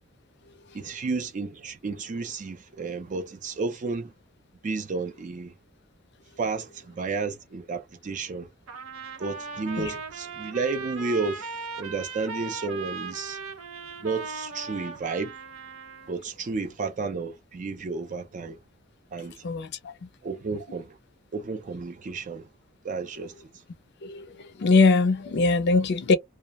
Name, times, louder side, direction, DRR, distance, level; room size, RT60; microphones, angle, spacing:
voice 1, 0.7-4.1 4.6-5.5 6.4-8.5 9.2-13.4 14.0-15.3 16.1-18.6 19.1-19.5 20.2-21.0 21.3-22.5 22.8-23.6, right 4 dB, 35° right, 0.4 m, -32 dB
Trumpet, 8.7-16.1, right 4 dB, 75° right, 0.7 m, -38 dB
voice 2, 19.4-19.9 24.0-24.3 24.6-26.2, left 3 dB, 55° left, 0.4 m, -21 dB
2.3 x 2.0 x 2.8 m
head